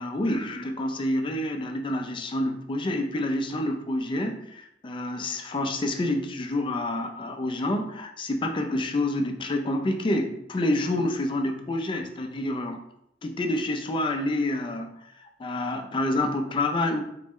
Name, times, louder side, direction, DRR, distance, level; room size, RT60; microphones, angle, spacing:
voice 1, 0.0-12.8 13.2-17.0, left 1 dB, 30° left, 4 dB, 0.3 m, -28 dB
4.0 x 2.1 x 3.5 m, 0.78 s
head